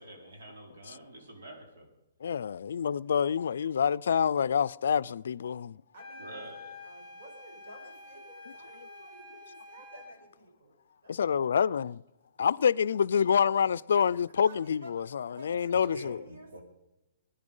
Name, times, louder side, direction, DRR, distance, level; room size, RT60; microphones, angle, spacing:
voice 1, 0.0-1.9 6.2-6.7 15.7-16.1 16.5-16.6, right 1 dB, 75° right, 4.4 m, -46 dB
voice 2, 2.2-5.8 11.1-12.0 12.4-16.2, left 7 dB, 65° left, 0.4 m, -27 dB
sound 1, 5.9-10.2, left 2 dB, 5° left, 3.9 m, -48 dB
voice 3, 5.9-6.5 6.8-10.8 11.0-11.2 14.4-14.9 15.2-16.6, right 1 dB, 55° right, 5.0 m, -52 dB
21.0 x 10.0 x 5.5 m
hypercardioid pair, 170°, 0 cm